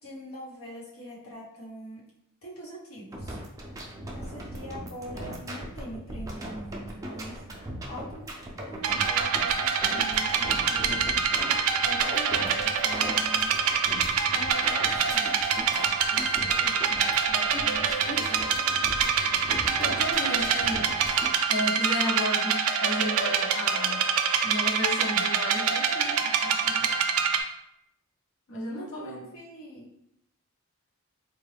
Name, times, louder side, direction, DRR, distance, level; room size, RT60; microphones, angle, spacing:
voice 1, 0.0-2.0 2.4-3.4 4.1-7.4 7.8-8.2 8.6-11.2 11.8-13.5 14.3-15.4 16.1-17.9 18.2-19.1 28.7-29.9, equal, 75° left, -5 dB, 1.2 m, -42 dB
sound 1, 3.1-21.3, right 1 dB, 15° right, 0.4 m, -39 dB
sound 2, 8.8-27.4, right 6 dB, 85° right, 0.4 m, -25 dB
voice 2, 19.8-20.9 21.5-24.1 24.4-27.0 28.5-29.3, left 1 dB, 55° left, -4 dB, 0.7 m, -33 dB
3.8 x 2.3 x 3.3 m, 0.77 s
head